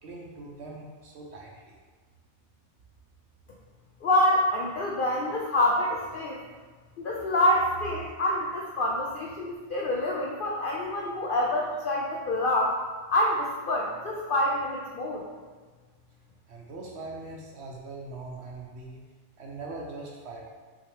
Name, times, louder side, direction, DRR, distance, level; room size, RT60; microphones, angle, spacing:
voice 1, 0.0-1.8 16.5-19.0 19.4-20.5, right 2 dB, 60° right, -1 dB, 0.8 m, -41 dB
voice 2, 4.0-6.4 7.0-12.7 13.1-15.2, left 1 dB, 65° left, -2 dB, 0.5 m, -26 dB
5.7 x 2.9 x 3.1 m, 1.4 s
omnidirectional pair, 1.5 m